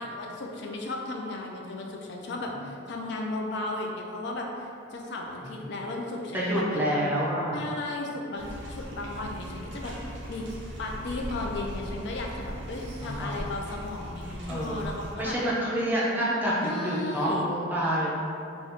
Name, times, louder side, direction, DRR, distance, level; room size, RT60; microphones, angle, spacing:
voice 1, 0.0-4.5 4.9-6.8 7.5-10.5 10.8-15.4 16.6-17.5, left 2 dB, 60° left, 0 dB, 0.3 m, -35 dB
voice 2, 6.3-7.6 13.0-13.5 14.5-14.8 15.1-18.1, equal, 10° right, -7 dB, 0.5 m, -28 dB
sound 1, 8.4-15.1, equal, 65° right, 0.5 m, -39 dB
2.6 x 2.4 x 3.4 m, 2.5 s
head